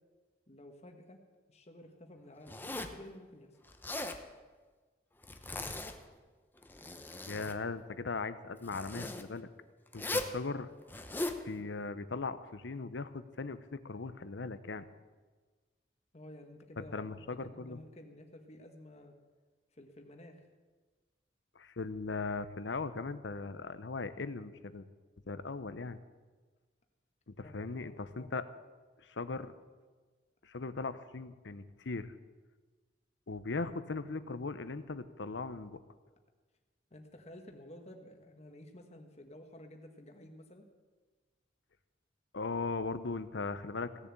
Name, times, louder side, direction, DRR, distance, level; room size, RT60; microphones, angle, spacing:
voice 1, 0.5-1.2 1.5-3.5 16.1-19.1 19.7-20.4 27.4-28.4 36.9-40.6, left 1 dB, 35° left, 4 dB, 1.4 m, -53 dB
Zipper (clothing), 2.5-3.0 3.7-4.2 5.2-6.0 6.6-7.6 8.7-9.2 9.9-10.4 10.9-11.4, left 2 dB, 10° left, 0.8 m, -38 dB
voice 2, 7.3-9.5 9.9-10.7 11.4-14.8 16.8-17.8 21.5-24.9 25.2-26.0 27.3-28.4 29.0-29.5 30.4-32.1 33.3-35.8 42.3-43.9, left 3 dB, 80° left, 13 dB, 0.8 m, -39 dB
16.5 x 7.0 x 8.9 m, 1.4 s
head